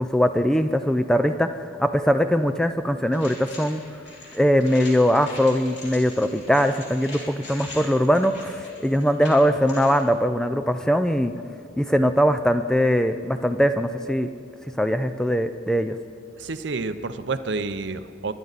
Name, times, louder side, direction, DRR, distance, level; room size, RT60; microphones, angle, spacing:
voice 1, 0.0-1.5 1.8-3.8 4.3-11.3 11.8-14.3 14.8-15.9, equal, 5° left, 9 dB, 0.3 m, -21 dB
sound 1, 3.1-10.0, left 2 dB, 65° left, 4.1 m, -42 dB
voice 2, 16.4-18.3, right 3 dB, 60° right, 11 dB, 0.6 m, -29 dB
24.5 x 11.0 x 4.0 m, 2.3 s
head